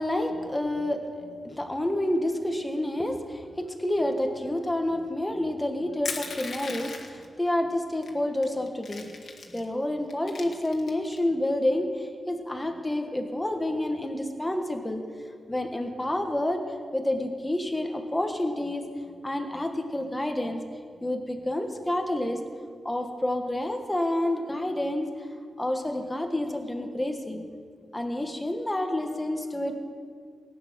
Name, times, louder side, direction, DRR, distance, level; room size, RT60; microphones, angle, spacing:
voice 1, 0.0-9.1 9.5-16.6 16.9-18.8 19.2-20.6 21.0-22.4 22.8-25.1 25.6-27.4 27.9-29.8, left 1 dB, 10° left, 4 dB, 1.4 m, -29 dB
Crushing, 6.0-7.2 8.0-8.1 8.4-9.6 10.1-11.2, left 4 dB, 55° left, 1.7 m, -37 dB
18.5 x 9.5 x 6.3 m, 2.1 s
wide cardioid pair, 135°, 0 cm